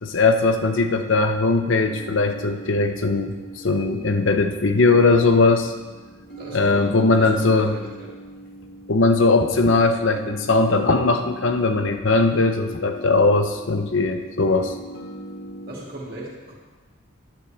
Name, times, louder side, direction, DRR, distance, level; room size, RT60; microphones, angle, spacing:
voice 1, 0.0-3.3 3.6-5.7 6.5-7.7 8.9-14.7, left 3 dB, 70° left, 6 dB, 0.8 m, -19 dB
sound 1, 1.9-15.7, right 1 dB, 50° left, 1.8 m, -41 dB
voice 2, 6.4-8.2 15.7-16.5, right 1 dB, 45° right, -4 dB, 2.4 m, -37 dB
11.5 x 9.5 x 3.4 m, 1.3 s
head